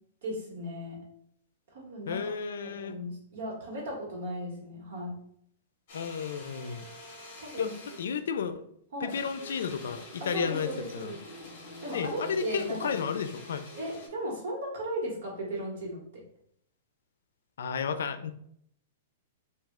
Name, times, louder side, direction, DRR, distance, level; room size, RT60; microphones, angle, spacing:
voice 1, 0.2-1.0 1.7-2.3 2.6-5.2 7.4-8.0 8.9-9.2 10.2-11.2 11.8-12.9 13.8-16.2, equal, 70° right, -1 dB, 1.5 m, -36 dB
voice 2, 2.1-3.0 5.9-6.9 7.6-8.6 9.0-11.1 11.9-13.7 17.6-18.3, left 6 dB, 85° left, 10 dB, 0.4 m, -33 dB
sound 1, 5.9-8.2 9.1-14.1, left 2 dB, 40° left, 1.1 m, -46 dB
3.1 x 2.7 x 3.6 m, 0.70 s
supercardioid pair, 165°, 0 cm